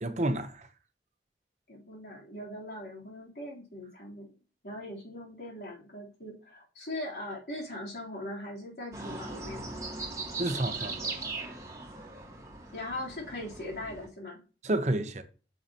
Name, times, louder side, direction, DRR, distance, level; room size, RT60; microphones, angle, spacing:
voice 1, 0.0-0.7 10.4-11.2 14.6-15.2, right 1 dB, 40° right, 0.7 m, -30 dB
voice 2, 1.7-4.3 4.6-9.6 12.7-14.4, left 1 dB, 70° left, 3.3 m, -40 dB
sound 1, 8.9-14.1, right 3 dB, 20° right, 1.5 m, -39 dB
9.3 x 6.6 x 2.9 m
head